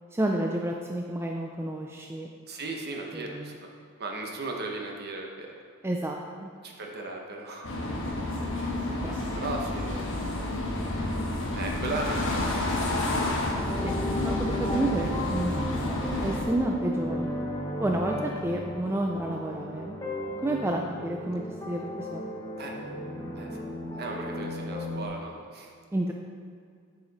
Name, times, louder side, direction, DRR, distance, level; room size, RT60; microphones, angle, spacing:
voice 1, 0.1-2.3 3.1-3.6 5.8-6.5 9.0-9.4 13.8-13.9 14.2-15.6 15.9-17.3 17.8-20.0 20.4-22.4 25.9-26.1, right 1 dB, 10° right, 1 dB, 0.3 m, -30 dB
voice 2, 2.5-3.5 4.0-5.5 6.6-7.7 9.4-10.4 11.5-13.5 22.6-22.7 23.4-23.6 24.0-25.7, right 2 dB, 50° right, 1 dB, 1.0 m, -36 dB
sound 1, 7.6-16.4, left 1 dB, 60° left, 1.1 m, -30 dB
sound 2, 13.6-25.1, left 1 dB, 15° left, 0.9 m, -35 dB
8.7 x 4.9 x 4.1 m, 2.2 s
head